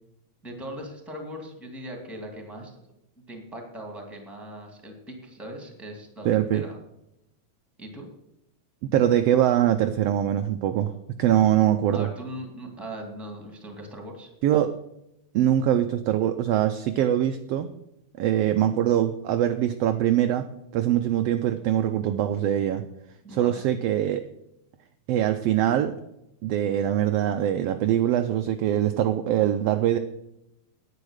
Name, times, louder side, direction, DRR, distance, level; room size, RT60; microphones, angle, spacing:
voice 1, 0.4-2.8 3.3-6.3 6.5-6.8 7.8-8.1 11.9-14.3 23.2-23.7, right 1 dB, ahead, 2 dB, 1.8 m, -39 dB
voice 2, 6.2-6.6 8.9-10.9 11.2-12.1 14.4-14.7 15.3-17.7 18.2-20.5 20.7-22.8 23.3-24.2 25.1-26.0 26.4-30.0, right 11 dB, 80° right, 8 dB, 1.4 m, -23 dB
9.7 x 9.5 x 6.4 m, 0.84 s
omnidirectional pair, 3.3 m